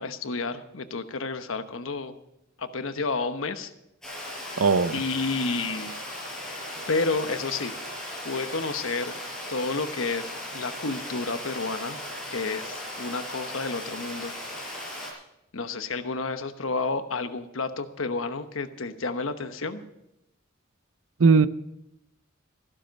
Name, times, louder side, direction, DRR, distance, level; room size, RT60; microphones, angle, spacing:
voice 1, 0.0-2.2 2.6-3.7 4.4-4.6 4.9-6.0 6.9-7.8 8.2-9.2 9.5-12.0 12.3-14.4 14.7-15.0 15.5-19.8, left 3 dB, 90° left, 9 dB, 1.1 m, -30 dB
Water, 4.0-15.1, left 1 dB, 5° left, 5.4 m, -37 dB
voice 2, 4.6-5.0 21.2-21.5, right 4 dB, 85° right, 14 dB, 0.7 m, -18 dB
15.0 x 12.5 x 5.3 m, 0.86 s
head